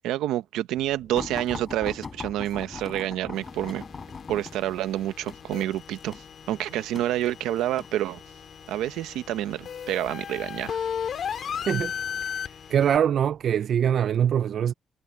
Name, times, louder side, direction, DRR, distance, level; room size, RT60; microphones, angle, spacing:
voice 1, 0.0-3.8 4.3-6.2 6.5-8.2 8.7-10.8, right 13 dB, 90° right, 0.9 m, -28 dB
sound 1, 0.7-13.5, right 2 dB, 15° right, 6.6 m, -56 dB
sound 2, 1.1-8.0 8.7-9.1 10.1-10.7 11.5-11.7 12.0-12.1, left 5 dB, 35° left, 4.9 m, -40 dB
sound 3, 3.3-13.0, left 8 dB, 60° left, 3.0 m, -36 dB
voice 2, 12.7-14.7, right 9 dB, 60° right, 0.4 m, -23 dB
cardioid pair, 90°, 0 cm